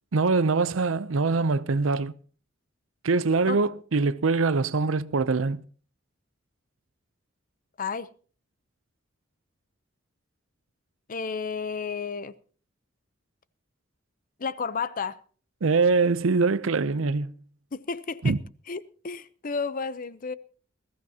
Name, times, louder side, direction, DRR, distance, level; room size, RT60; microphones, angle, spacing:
voice 1, 0.1-2.1 3.0-5.6 15.6-17.3 18.2-18.4, right 4 dB, 80° right, 0.6 m, -23 dB
voice 2, 7.8-8.1 11.1-12.3 14.4-15.2 17.7-18.3 18.7-20.3, left 5 dB, 45° left, 0.7 m, -32 dB
21.0 x 14.5 x 2.8 m
head